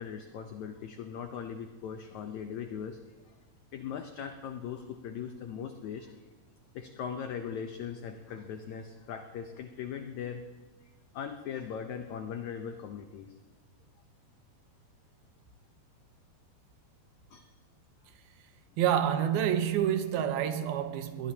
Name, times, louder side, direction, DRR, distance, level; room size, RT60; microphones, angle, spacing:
voice 1, 0.0-3.0 3.3-3.4 3.7-6.1 6.7-10.4 11.1-13.3 17.3-17.5, left 7 dB, 85° left, 1.6 m, -39 dB
voice 2, 18.8-21.3, right 10 dB, 80° right, 2.8 m, -28 dB
22.5 x 18.5 x 2.8 m
omnidirectional pair, 4.4 m